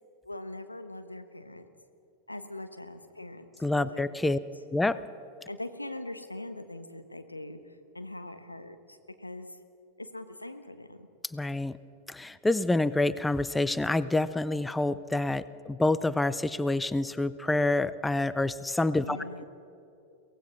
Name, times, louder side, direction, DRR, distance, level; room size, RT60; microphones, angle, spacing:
voice 1, 0.2-1.7 2.3-4.4 5.5-9.6 10.0-11.1 19.0-19.4, left 1 dB, 85° left, 8 dB, 1.3 m, -42 dB
voice 2, 3.6-4.4 4.7-5.0 11.3-11.8 12.1-19.2, left 2 dB, 5° left, 16 dB, 0.5 m, -27 dB
23.5 x 18.5 x 6.1 m, 2.7 s
figure-of-eight pair, 90°, 0 cm